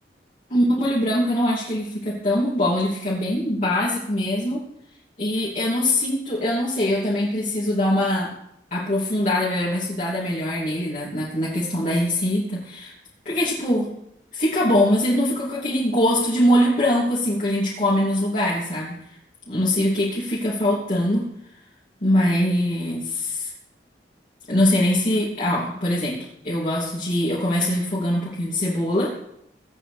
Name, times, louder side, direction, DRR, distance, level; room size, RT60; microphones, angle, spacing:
voice 1, 0.5-4.6 5.2-8.3 8.7-12.9 13.2-13.9 14.3-19.0 19.5-21.2 22.0-23.5 24.5-26.2 26.4-29.1, left 1 dB, 45° left, -8 dB, 2.9 m, -22 dB
22.0 x 8.8 x 3.4 m, 0.78 s
head